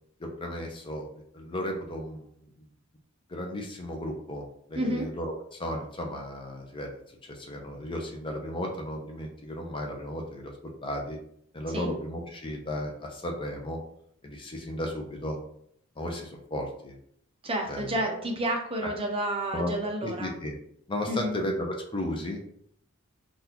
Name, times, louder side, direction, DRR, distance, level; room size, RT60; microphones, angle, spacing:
voice 1, 0.2-2.3 2.6-2.7 3.3-7.0 7.3-10.5 10.8-11.2 11.5-13.8 14.2-15.4 16.0-17.0 17.7-17.9 18.8-18.9 19.5-19.7 20.0-20.6 20.9-22.4, left 1 dB, 20° left, 1 dB, 0.6 m, -34 dB
voice 2, 4.7-5.1 11.7-11.9 17.4-20.3 21.1-21.3, right 1 dB, 25° right, 1 dB, 0.6 m, -30 dB
3.9 x 2.4 x 2.8 m, 0.67 s
head